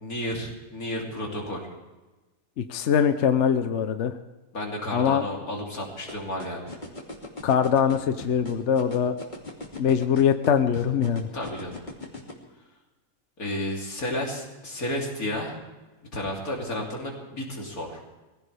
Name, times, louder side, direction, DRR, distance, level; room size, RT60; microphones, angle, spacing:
voice 1, 0.0-1.7 4.5-6.8 11.3-11.8 13.4-15.6 16.1-18.0, left 1 dB, 85° left, -2 dB, 3.6 m, -32 dB
voice 2, 2.6-4.1 4.9-5.2 7.4-9.1 9.8-11.3, left 8 dB, 60° left, 9 dB, 1.0 m, -22 dB
sound 1, 6.1-12.3, left 2 dB, 30° left, 2.7 m, -38 dB
22.5 x 16.0 x 3.5 m, 1.2 s
omnidirectional pair, 1.5 m